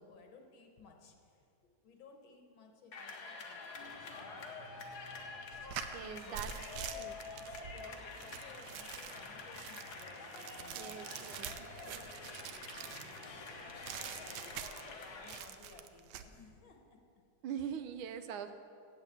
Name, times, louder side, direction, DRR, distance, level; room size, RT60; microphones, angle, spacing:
voice 1, 0.0-1.4 1.6-4.9 5.9-7.1 7.4-14.5 15.0-17.0 17.5-17.8, left 4 dB, 75° left, 3 dB, 2.0 m, -58 dB
sound 1, 2.9-15.4, left 4 dB, 55° left, 1.5 m, -48 dB
sound 2, 3.7-14.5, right 1 dB, 50° right, 2.3 m, -58 dB
sound 3, 5.5-13.3 13.8-15.0 15.2-16.3, right 9 dB, 70° right, 1.1 m, -46 dB
voice 2, 5.9-6.5 7.0-7.1 10.7-12.0 17.4-18.5, right 8 dB, 90° right, 8 dB, 1.5 m, -43 dB
8.2 x 8.0 x 8.3 m, 2.4 s
omnidirectional pair, 2.2 m